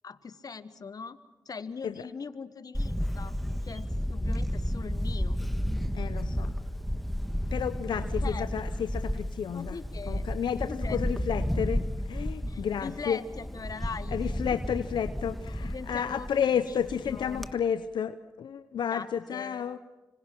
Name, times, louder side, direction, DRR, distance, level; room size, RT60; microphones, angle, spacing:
voice 1, 0.0-1.2 1.4-3.3 3.6-5.4 8.0-8.5 9.5-10.3 10.6-11.1 12.5-14.6 15.6-17.5 18.9-19.7, left 5 dB, 55° left, 13 dB, 1.3 m, -41 dB
Camera, 2.7-17.5, equal, ahead, 1.4 m, -32 dB
voice 2, 5.9-6.5 7.5-9.8 10.1-13.2 14.1-19.8, left 8 dB, 80° left, 11 dB, 0.7 m, -31 dB
26.5 x 25.5 x 6.0 m, 1.2 s
cardioid pair, 50°, 8 cm